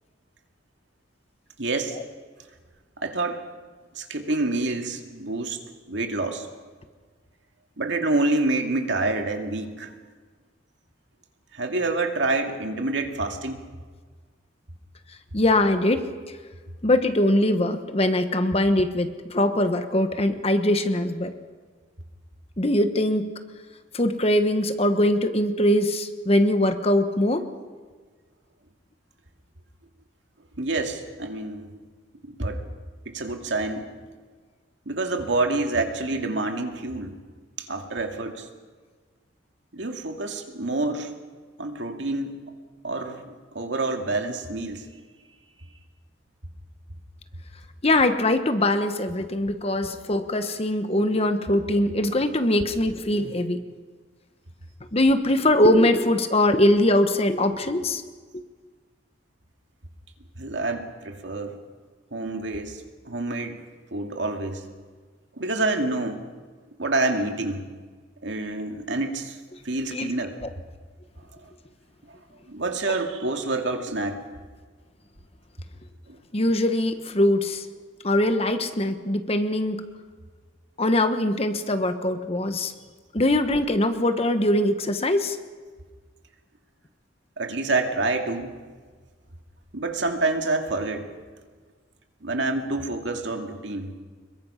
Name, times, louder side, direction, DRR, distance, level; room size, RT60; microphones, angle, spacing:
voice 1, 1.6-2.0 3.0-3.4 3.9-5.6 5.9-6.5 7.8-9.9 11.5-13.7 30.6-31.7 32.2-32.6 33.1-33.9 34.9-37.2 37.6-38.5 39.7-41.1 41.6-42.4 42.8-44.9 60.4-61.6 62.1-63.6 63.9-64.6 65.4-66.3 66.8-67.6 68.2-69.4 69.6-70.3 72.1-72.2 72.5-74.2 76.1-76.2 87.4-88.5 89.7-91.1 92.2-93.9, right 2 dB, 70° right, 4 dB, 2.4 m, -27 dB
voice 2, 15.3-16.1 16.8-21.3 22.6-23.3 23.9-27.4 47.8-53.6 54.9-58.0 69.9-70.1 76.3-77.7 78.0-79.8 80.8-82.7 83.1-85.4, left 1 dB, 30° left, 8 dB, 1.3 m, -22 dB
26.0 x 22.0 x 5.8 m, 1.5 s
head